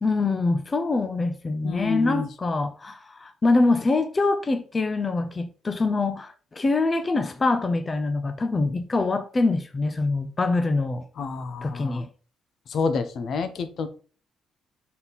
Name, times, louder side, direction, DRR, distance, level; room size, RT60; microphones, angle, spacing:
voice 1, 0.0-11.0 11.6-12.1, left 3 dB, 30° left, 0.5 m, -24 dB
voice 2, 1.6-2.3 11.2-12.0 12.7-13.9, left 4 dB, 60° left, 0.7 m, -28 dB
5.6 x 4.2 x 4.0 m
cardioid pair, 90°, 0 cm